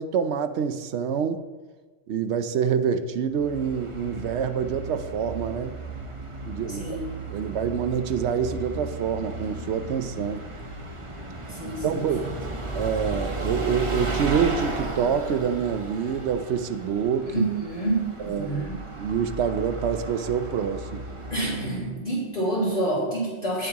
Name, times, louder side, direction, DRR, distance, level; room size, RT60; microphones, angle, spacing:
voice 1, 0.0-1.4 2.1-5.8 6.5-7.0 7.3-10.4 11.6-12.3 12.7-17.4 18.2-18.7 19.0-21.0, right 7 dB, 70° right, 11 dB, 0.9 m, -26 dB
Bus, 3.3-21.9, right 2 dB, 30° right, 0.9 m, -35 dB
voice 2, 6.7-7.1 11.5-12.1 17.2-18.8 21.3-23.7, right 1 dB, 45° left, -8 dB, 3.0 m, -28 dB
17.0 x 7.3 x 2.9 m, 1.3 s
omnidirectional pair, 1.3 m